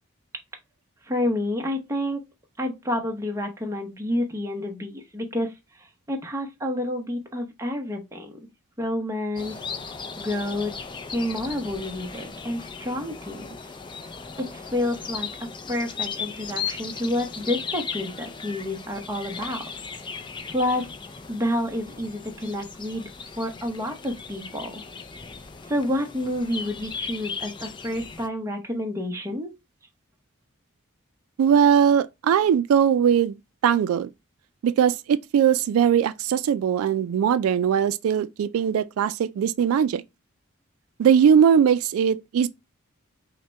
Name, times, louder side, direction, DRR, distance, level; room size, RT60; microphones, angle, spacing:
voice 1, 1.0-2.2 2.6-8.4 8.8-9.6 10.2-10.7 11.1-13.6 14.0-14.1 14.4-19.6 20.5-20.9 21.3-24.8 25.7-29.5, left 1 dB, 15° right, 0.8 m, -29 dB
sound 1, 9.4-28.3, left 5 dB, 20° left, 0.4 m, -37 dB
voice 2, 31.4-33.4 33.6-34.1 34.6-40.0 41.0-42.5, right 8 dB, 85° right, 0.3 m, -20 dB
5.6 x 2.2 x 3.3 m
head